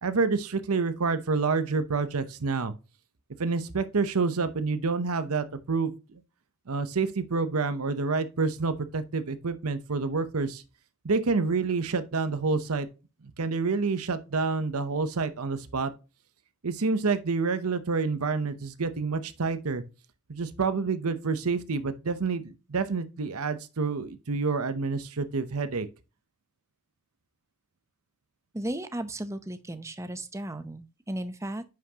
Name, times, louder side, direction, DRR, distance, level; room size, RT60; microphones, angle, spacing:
voice 1, 0.0-2.7 3.4-6.2 6.7-10.6 11.0-12.9 13.4-15.9 16.6-19.8 20.3-25.9, right 4 dB, 85° right, 0.8 m, -28 dB
voice 2, 28.5-31.6, right 1 dB, 15° right, 0.6 m, -35 dB
9.6 x 5.8 x 2.8 m
head